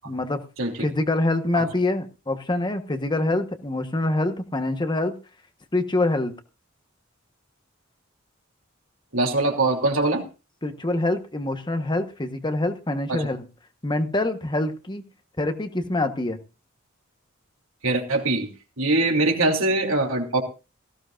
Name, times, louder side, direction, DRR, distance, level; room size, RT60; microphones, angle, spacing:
voice 1, 0.0-0.4 0.8-5.1 5.7-6.3 10.6-13.5 13.8-15.0 15.4-16.4, left 2 dB, 20° left, 8 dB, 1.2 m, -25 dB
voice 2, 9.1-10.2 13.1-13.2 17.8-18.5 18.8-20.4, right 2 dB, 75° right, 1 dB, 3.0 m, -22 dB
18.0 x 15.5 x 2.5 m, 0.31 s
head